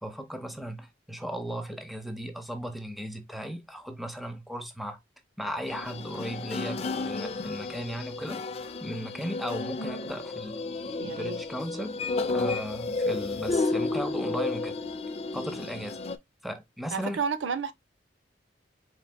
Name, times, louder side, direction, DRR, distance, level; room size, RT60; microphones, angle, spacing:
voice 1, 0.0-5.0 5.4-8.4 8.8-10.6 11.0-12.0 12.3-14.8 15.3-16.0 16.4-17.2, equal, ahead, 0.7 m, -36 dB
sound 1, 5.7-16.2, left 3 dB, 35° left, 0.4 m, -32 dB
voice 2, 11.0-11.4 16.9-17.7, right 6 dB, 85° right, 0.5 m, -31 dB
4.5 x 4.0 x 2.2 m
head